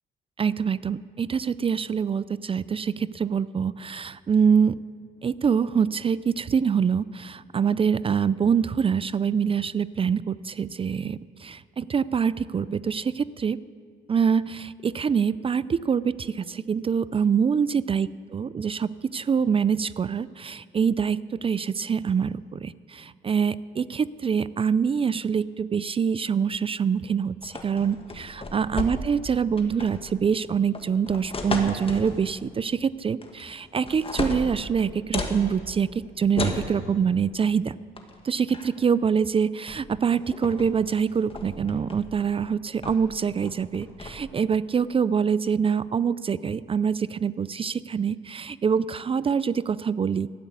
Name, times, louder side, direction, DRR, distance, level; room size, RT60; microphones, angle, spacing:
voice 1, 0.4-4.8 5.2-13.6 14.1-37.7 38.2-50.3, right 6 dB, 30° right, 18 dB, 0.3 m, -25 dB
sound 1, 27.4-29.3 29.6-30.1 30.7-32.2 33.2-33.6 33.9-35.4 36.3-36.7 38.0-38.1 38.5-38.8 39.7-39.8 40.1-40.7 41.1-42.3 42.8-43.1 43.4-44.1, left 2 dB, 30° left, 1.7 m, -33 dB
13.0 x 8.3 x 9.4 m, 2.2 s
cardioid pair, 90°, 20 cm